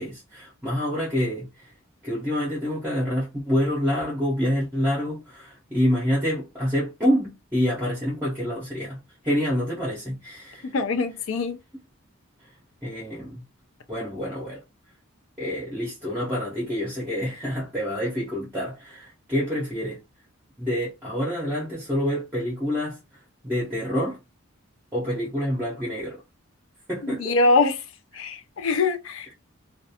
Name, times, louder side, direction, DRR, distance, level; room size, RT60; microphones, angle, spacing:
voice 1, 0.0-1.5 2.0-9.0 9.2-10.7 12.8-13.4 13.9-14.6 15.4-20.0 20.6-23.0 23.4-24.2 24.9-26.2 26.9-27.4, equal, 10° right, 0.6 m, -27 dB
voice 2, 10.7-11.6 27.0-27.8 28.1-29.3, left 3 dB, 70° left, 0.4 m, -23 dB
2.4 x 2.2 x 2.7 m
head